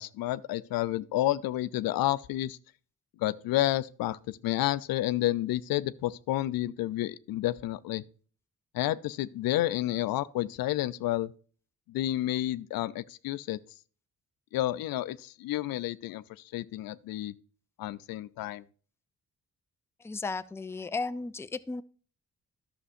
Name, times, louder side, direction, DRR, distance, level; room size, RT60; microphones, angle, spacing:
voice 1, 0.0-2.6 3.2-8.0 8.7-11.3 11.9-13.6 14.5-16.2 16.5-17.3 17.8-18.6, left 15 dB, 80° left, 0.5 m, -30 dB
voice 2, 20.0-21.8, left 3 dB, 10° left, 0.4 m, -34 dB
11.5 x 6.8 x 2.6 m
cardioid pair, 70°, 34 cm